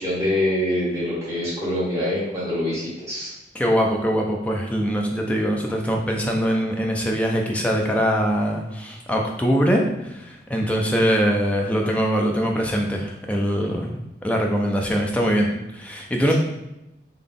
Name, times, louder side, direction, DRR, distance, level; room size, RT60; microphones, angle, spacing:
voice 1, 0.0-3.3, left 1 dB, 15° right, -9 dB, 1.4 m, -25 dB
voice 2, 3.5-15.5 15.7-16.3, equal, 10° left, 0 dB, 0.4 m, -22 dB
3.7 x 2.3 x 3.5 m, 0.90 s
head